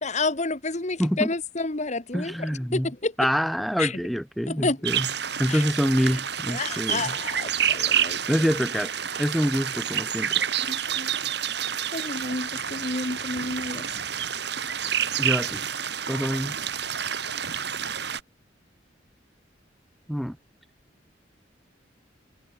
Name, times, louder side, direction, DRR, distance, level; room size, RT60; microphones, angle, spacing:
voice 1, 0.0-3.3 3.8-4.0 4.5-4.9 5.5-5.6 6.5-8.2 10.7-11.1 11.9-13.9, left 3 dB, 40° left, 1.6 m, -30 dB
voice 2, 2.1-2.9 3.2-5.1 5.4-7.1 8.3-8.9 9.2-10.4 15.2-15.7 16.1-16.6 20.1-20.4, equal, ahead, 1.6 m, -26 dB
sound 1, 4.8-18.2, right 9 dB, 65° right, 4.2 m, -29 dB
head